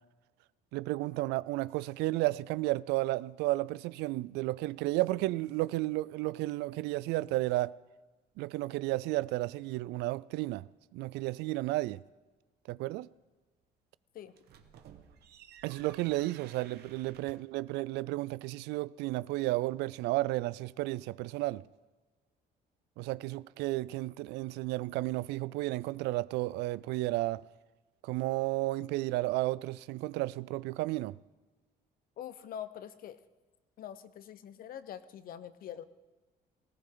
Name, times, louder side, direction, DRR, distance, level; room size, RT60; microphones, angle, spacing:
voice 1, 0.7-7.8 8.4-10.7 10.9-12.0 12.7-13.1 15.6-21.6 23.0-27.4 28.0-31.2, right 18 dB, 90° right, 0.4 m, -32 dB
sound 1, 14.3-17.6, right 8 dB, 70° right, 1.3 m, -55 dB
voice 2, 32.2-33.2 33.8-35.8, left 10 dB, 60° left, 0.9 m, -44 dB
18.5 x 16.5 x 3.9 m
cardioid pair, 110°, 17 cm